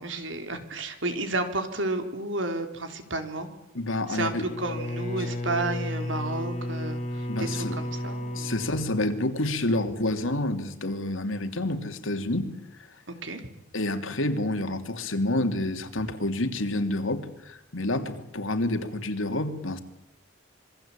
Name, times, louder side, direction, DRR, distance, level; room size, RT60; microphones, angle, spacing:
voice 1, 0.0-3.5 4.1-8.5 13.2-13.4, right 2 dB, 70° right, 7 dB, 4.0 m, -32 dB
voice 2, 3.7-4.5 7.3-7.8 8.3-12.5 13.7-19.8, left 1 dB, 85° left, 7 dB, 3.0 m, -28 dB
Bowed string instrument, 4.4-9.7, left 1 dB, 35° left, 4.4 m, -33 dB
27.0 x 23.0 x 8.8 m, 0.81 s
head